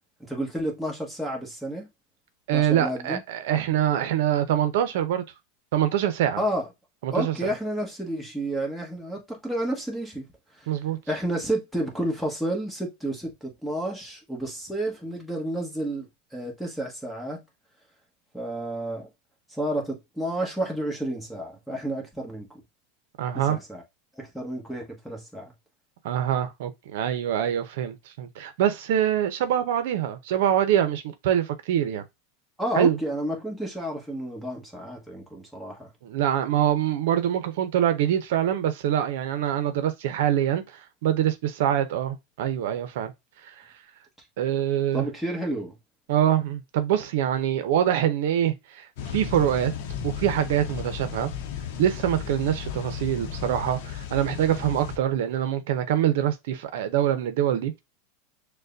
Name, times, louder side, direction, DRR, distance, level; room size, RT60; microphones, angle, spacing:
voice 1, 0.2-1.9 2.5-3.2 6.3-6.7 7.1-10.2 10.5-10.7 11.1-17.4 18.3-19.1 19.5-22.6 23.3-23.8 24.2-25.5 32.6-35.9 44.9-45.7, right 1 dB, ahead, 1.3 m, -31 dB
voice 2, 2.5-5.2 5.7-6.4 7.0-7.5 10.7-11.0 23.2-23.6 26.0-32.0 32.7-33.0 36.0-43.1 43.4-43.7 44.4-45.1 46.1-49.7 50.0-51.3 51.8-57.8, right 10 dB, 75° right, 0.7 m, -24 dB
sound 1, 49.0-55.0, left 8 dB, 70° left, 0.7 m, -35 dB
6.5 x 2.2 x 2.6 m
supercardioid pair, 130°, 0 cm